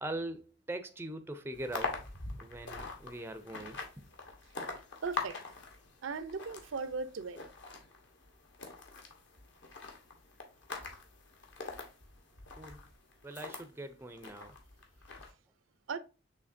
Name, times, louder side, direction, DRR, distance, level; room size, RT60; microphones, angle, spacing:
voice 1, 0.0-2.0 2.4-3.8 12.6-12.8 13.2-14.5, right 1 dB, 10° right, 0.4 m, -41 dB
sound 1, 1.5-13.7 14.2-15.3, left 3 dB, 65° left, 1.2 m, -44 dB
voice 2, 5.0-5.4 6.0-7.4 15.9-16.0, right 4 dB, 80° right, 0.5 m, -37 dB
6.4 x 3.1 x 2.6 m
head